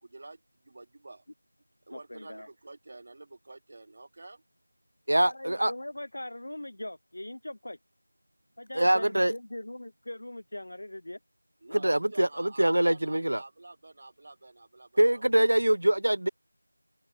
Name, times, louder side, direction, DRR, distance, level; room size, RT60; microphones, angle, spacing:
voice 1, 0.0-1.2 1.9-4.4 11.6-15.3, right 2 dB, 25° right, 1.2 m, -49 dB
voice 2, 1.9-2.5 5.2-7.8 8.6-11.2 11.7-11.8, left 1 dB, 50° left, 0.9 m, -40 dB
voice 3, 5.1-5.7 8.8-9.3 11.7-13.4 15.0-16.3, right 1 dB, 60° right, 0.4 m, -24 dB
figure-of-eight pair, 180°, 0 cm